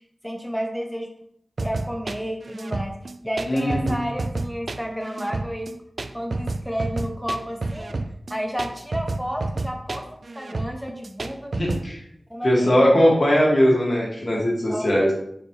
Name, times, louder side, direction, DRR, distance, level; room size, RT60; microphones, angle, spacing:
voice 1, 0.2-1.1 1.6-2.9 3.2-5.7 6.1-8.0 8.3-10.0 10.3-11.5 12.3-13.0 14.7-15.1, equal, ahead, 2 dB, 0.9 m, -31 dB
sound 1, 1.6-11.8, right 3 dB, 70° right, 0.4 m, -30 dB
voice 2, 3.5-4.0 11.5-12.0 12.4-15.1, equal, 55° left, -3 dB, 2.3 m, -19 dB
6.2 x 4.8 x 3.3 m, 0.73 s
cardioid pair, 40°, 0 cm